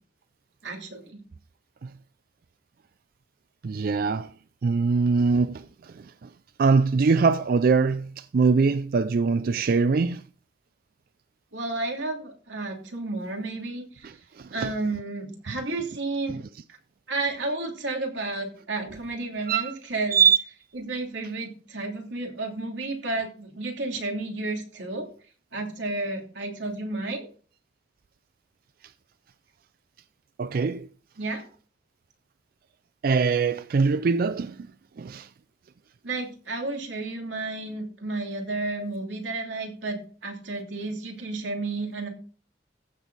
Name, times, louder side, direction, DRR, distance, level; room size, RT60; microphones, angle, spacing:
voice 1, 0.6-1.2 11.5-14.1 14.5-16.4 16.7-16.8 17.1-20.2 20.7-25.1 25.5-27.3 31.2-31.4 36.0-42.1, right 2 dB, 90° right, 3.0 m, -32 dB
voice 2, 3.6-4.3 4.6-6.3 6.6-10.2 14.0-14.7 19.5-19.7 20.1-20.4 30.4-30.9 33.0-34.7 35.0-35.3, right 5 dB, 55° right, 0.4 m, -23 dB
15.0 x 7.0 x 4.1 m
head